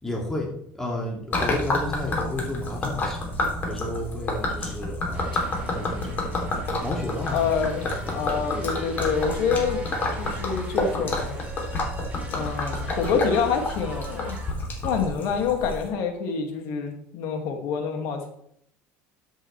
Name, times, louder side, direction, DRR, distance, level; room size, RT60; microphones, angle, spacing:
voice 1, 0.0-6.5 6.8-9.2, left 1 dB, 10° left, -2 dB, 2.3 m, -33 dB
Gurgling / Liquid, 1.3-15.9, left 2 dB, 35° left, 3.0 m, -29 dB
sound 1, 5.1-14.5, right 3 dB, 25° right, 2.7 m, -43 dB
voice 2, 7.3-9.8 10.2-11.4 12.3-14.4 14.8-18.3, left 6 dB, 75° left, 3 dB, 2.2 m, -27 dB
13.0 x 7.8 x 3.3 m, 0.68 s
cardioid pair, 125°, 6 cm